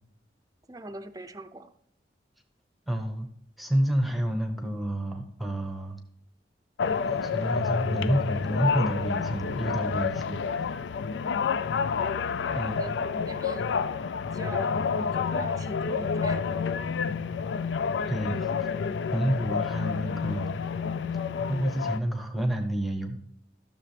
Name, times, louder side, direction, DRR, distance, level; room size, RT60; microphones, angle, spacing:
voice 1, 0.7-1.7 11.2-11.7 12.5-13.8 14.3-16.4, right 2 dB, 20° right, 9 dB, 0.5 m, -42 dB
voice 2, 2.9-3.3 3.6-6.0 7.1-10.8 12.5-12.8 18.1-18.5 19.1-20.5 21.5-23.2, right 1 dB, ahead, 5 dB, 0.9 m, -29 dB
sound 1, 6.8-22.0, left 5 dB, 80° left, 0.4 m, -29 dB
13.0 x 6.7 x 3.3 m, 0.72 s
head